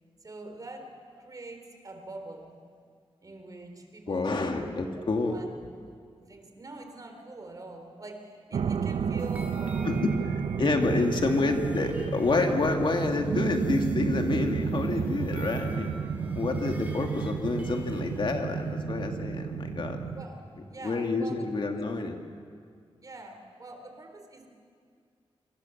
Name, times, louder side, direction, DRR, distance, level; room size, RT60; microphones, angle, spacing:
voice 1, 0.2-2.6 3.2-4.6 5.0-5.5 6.3-10.1 10.9-11.3 20.2-21.4 23.0-24.5, right 2 dB, 35° right, 4 dB, 3.7 m, -45 dB
voice 2, 4.1-5.4 9.8-10.1 10.6-15.9 16.4-20.0 20.8-22.2, left 3 dB, 55° left, 4 dB, 2.2 m, -28 dB
sound 1, 8.5-20.3, right 6 dB, 85° right, 0.8 m, -32 dB
sound 2, 9.2-18.7, right 2 dB, 15° right, 3.4 m, -50 dB
sound 3, 14.8-21.2 21.5-21.6, equal, 25° left, 2.6 m, -42 dB
27.0 x 26.0 x 7.2 m, 2.1 s
wide cardioid pair, 140°, 10 cm